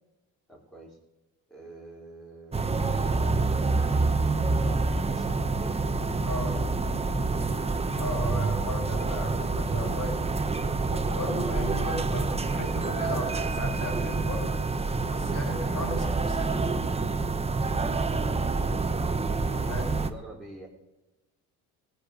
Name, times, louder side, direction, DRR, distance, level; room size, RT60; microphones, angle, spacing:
voice 1, 0.5-1.0 1.5-6.3 19.0-20.7, right 1 dB, 5° left, -5 dB, 3.8 m, -47 dB
sound 1, 2.5-20.1, right 3 dB, 15° right, 0.9 m, -27 dB
voice 2, 6.3-6.6 8.0-10.2 10.9-14.5 15.0-16.5 19.7-19.9, left 2 dB, 45° left, 2 dB, 5.8 m, -36 dB
17.5 x 8.4 x 6.7 m, 1.1 s
supercardioid pair, 85°, 38 cm